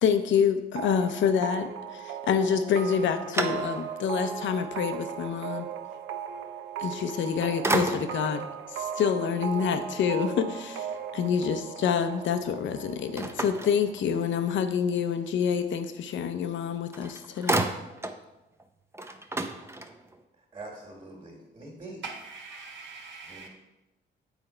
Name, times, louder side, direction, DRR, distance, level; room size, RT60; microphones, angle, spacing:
voice 1, 0.0-5.7 6.8-8.5 8.7-10.8 11.1-17.7, left 7 dB, 70° left, 9 dB, 0.7 m, -27 dB
sound 1, 0.8-14.3, right 9 dB, 85° right, 0.6 m, -38 dB
sound 2, 2.7-4.1 4.6-4.7 7.0-7.3 7.6-8.4 13.2-14.4 16.5-16.6 16.9-18.2 18.6-18.7 18.9-20.2, right 2 dB, 15° right, 0.6 m, -31 dB
voice 2, 20.4-22.0 23.2-23.5, right 2 dB, 30° right, -2 dB, 1.8 m, -44 dB
voice 3, 22.0-23.5, right 4 dB, 65° right, 0 dB, 1.7 m, -42 dB
8.1 x 4.4 x 4.4 m, 0.99 s
cardioid pair, 90°, 20 cm